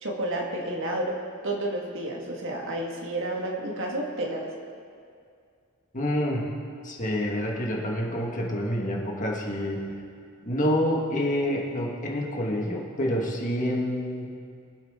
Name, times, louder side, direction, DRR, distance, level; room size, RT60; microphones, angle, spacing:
voice 1, 0.0-1.2 1.4-4.5, right 1 dB, 60° right, 0 dB, 1.8 m, -30 dB
voice 2, 5.9-6.5 6.8-9.9 10.4-14.3, equal, 35° left, -1 dB, 1.8 m, -27 dB
22.5 x 8.3 x 3.7 m, 2.3 s
head